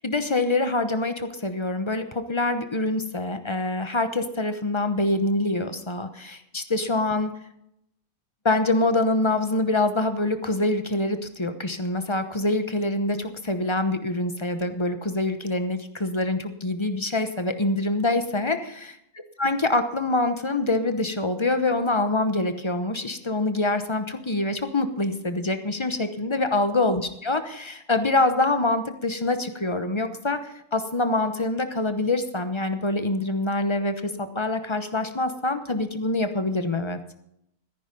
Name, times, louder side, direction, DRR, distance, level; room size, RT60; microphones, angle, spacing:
voice 1, 0.0-7.3 8.4-19.0 19.4-37.0, left 2 dB, 25° left, 9 dB, 0.8 m, -25 dB
14.0 x 10.0 x 5.3 m, 0.77 s
omnidirectional pair, 1.6 m